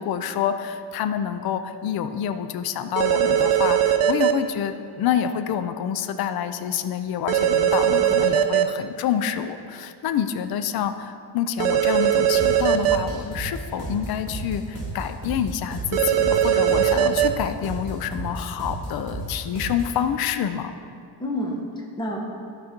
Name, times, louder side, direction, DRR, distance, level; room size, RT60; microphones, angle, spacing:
voice 1, 0.0-20.7, left 9 dB, 50° left, 9 dB, 0.5 m, -27 dB
sound 1, 3.0-4.3 7.3-8.6 11.6-13.0 15.9-17.3, right 10 dB, 80° right, 0.7 m, -19 dB
voice 2, 8.0-8.6 21.2-22.2, equal, 10° left, -2 dB, 1.2 m, -31 dB
sound 2, 12.4-20.0, right 2 dB, 30° right, 1.8 m, -34 dB
12.0 x 4.2 x 5.2 m, 2.3 s
cardioid pair, 140°, 48 cm